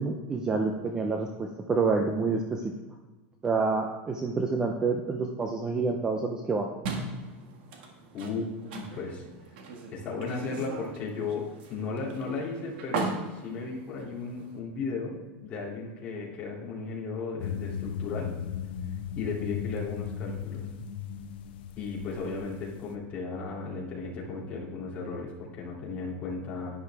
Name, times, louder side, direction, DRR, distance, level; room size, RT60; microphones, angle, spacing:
voice 1, 0.0-2.6 3.4-6.7, right 4 dB, 10° right, 3 dB, 0.5 m, -28 dB
sound 1, 6.8-14.6, right 4 dB, 65° right, 1.7 m, -39 dB
voice 2, 8.1-9.2 9.9-18.3 19.2-20.7 21.8-26.8, left 4 dB, 25° left, -5 dB, 2.6 m, -35 dB
sound 2, 17.4-22.9, left 8 dB, 70° left, 0.9 m, -36 dB
11.5 x 9.6 x 3.4 m, 1.2 s
supercardioid pair, 175°, 6 cm